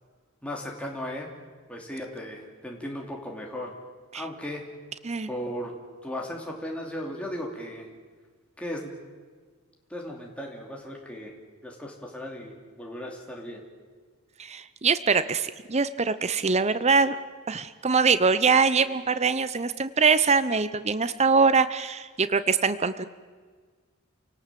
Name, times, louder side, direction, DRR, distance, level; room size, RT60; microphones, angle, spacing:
voice 1, 0.4-1.3 1.7-3.7 4.1-4.7 5.3-5.7 6.0-7.9 8.6-8.9 9.9-11.4 11.6-13.6, left 1 dB, 5° left, -1 dB, 2.9 m, -36 dB
voice 2, 14.4-17.2 17.5-23.1, right 5 dB, 30° right, 13 dB, 0.7 m, -23 dB
28.5 x 18.5 x 7.6 m, 1.5 s
head